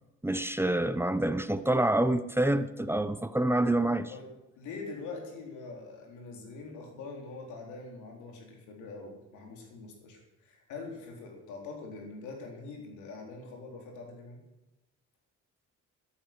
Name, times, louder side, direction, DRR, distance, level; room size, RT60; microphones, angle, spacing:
voice 1, 0.2-4.1, right 1 dB, 10° right, 0.8 m, -27 dB
voice 2, 4.6-14.4, left 3 dB, 90° left, 4.0 m, -44 dB
13.5 x 11.5 x 6.1 m
cardioid pair, 90°, 29 cm